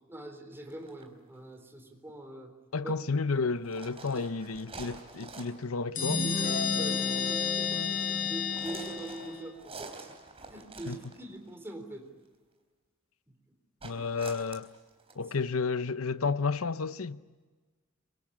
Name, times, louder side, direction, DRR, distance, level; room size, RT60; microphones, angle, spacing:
voice 1, 0.1-2.5 2.8-2.9 4.0-4.3 6.7-10.1 10.5-12.1 13.3-13.4 13.9-14.0, right 1 dB, 10° right, 3.8 m, -44 dB
sound 1, 0.7-1.0 3.6-5.7 6.0-6.3 8.5-11.5 13.8-15.2, right 3 dB, 30° right, 3.8 m, -47 dB
voice 2, 2.7-6.3 10.9-11.0 13.8-14.7 15.2-17.2, left 4 dB, 75° left, 0.8 m, -31 dB
sound 2, 5.9-9.5, left 5 dB, 40° left, 5.1 m, -30 dB
25.5 x 23.5 x 8.7 m
head